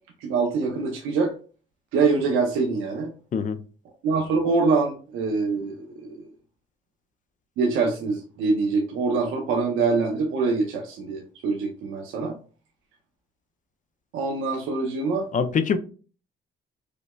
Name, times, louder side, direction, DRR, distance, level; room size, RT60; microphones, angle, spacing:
voice 1, 0.2-1.3 1.9-3.1 4.0-6.3 7.6-12.3 14.1-15.3, right 4 dB, 90° right, 0.7 m, -24 dB
voice 2, 15.3-15.8, left 6 dB, 40° left, 0.4 m, -23 dB
4.9 x 2.0 x 2.2 m
cardioid pair, 90°, 20 cm